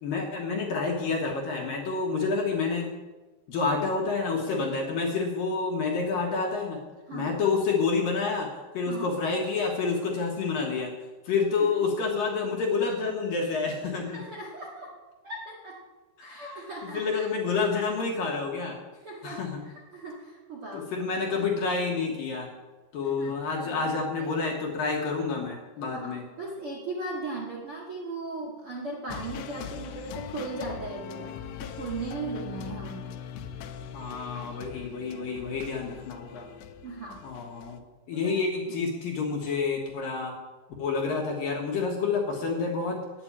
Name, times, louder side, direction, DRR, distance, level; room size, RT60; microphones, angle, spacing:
voice 1, 0.0-2.9 3.5-6.8 7.1-8.5 8.7-10.9 11.3-14.2 16.2-16.5 16.8-18.8 19.2-19.6 20.7-22.5 22.9-26.2 33.9-36.5 37.2-37.8 38.1-40.3 40.8-43.0, left 4 dB, 60° left, 0 dB, 2.7 m, -28 dB
voice 2, 14.1-15.0 15.2-15.8 16.2-17.3 18.9-21.0 23.0-24.3 25.9-31.3 31.6-33.1 36.8-37.2 38.1-38.3, right 3 dB, 55° right, -4 dB, 1.6 m, -38 dB
sound 1, 29.1-37.8, left 8 dB, 85° left, 3.1 m, -41 dB
9.6 x 8.8 x 8.8 m, 1.2 s
omnidirectional pair, 5.3 m